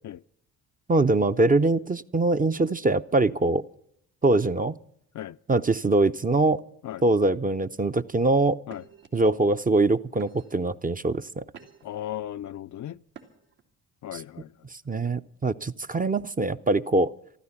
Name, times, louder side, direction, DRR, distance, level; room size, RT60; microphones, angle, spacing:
voice 1, 0.9-3.6 4.2-4.8 5.5-6.6 7.0-8.6 9.1-11.4 14.1-14.2 14.9-17.1, right 2 dB, 20° right, 0.6 m, -23 dB
sound 1, 8.7-9.1 9.7-9.9 10.2-10.7 11.2-12.0 13.1-13.6, right 7 dB, 80° right, 2.6 m, -49 dB
voice 2, 11.8-13.0 14.0-14.5, left 12 dB, 45° left, 0.5 m, -36 dB
14.0 x 13.0 x 7.2 m
hypercardioid pair, 50°, 43 cm